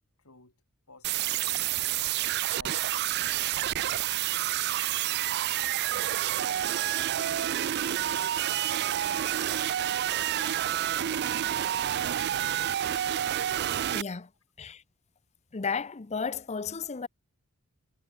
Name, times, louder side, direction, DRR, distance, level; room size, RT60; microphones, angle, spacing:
voice 1, 0.2-0.6 0.9-1.7 2.5-3.8 4.2-5.5 6.2-7.2 7.6-9.4 9.9-11.4, left 3 dB, 80° left, 6.6 m, -57 dB
sound 1, 1.0-14.0, right 12 dB, 50° right, 0.4 m, -29 dB
sound 2, 3.4-9.6, right 3 dB, 85° right, 2.0 m, -60 dB
voice 2, 13.9-14.3 14.6-14.8 15.5-17.1, left 5 dB, 30° left, 0.6 m, -33 dB
head